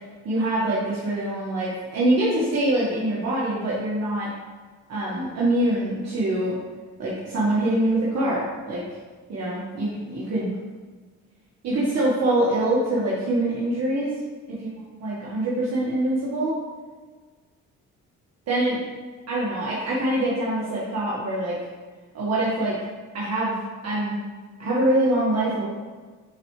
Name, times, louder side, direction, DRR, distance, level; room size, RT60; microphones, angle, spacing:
voice 1, 0.2-4.3 4.9-6.6 7.0-8.8 9.3-10.5 11.6-14.1 14.5-14.6 15.0-16.6 18.5-18.8 19.3-21.6 22.1-22.8 23.1-23.6 23.8-24.2 24.6-25.6, right 1 dB, 55° right, -7 dB, 1.6 m, -24 dB
9.6 x 4.2 x 3.2 m, 1.4 s
cardioid pair, 90°, 30 cm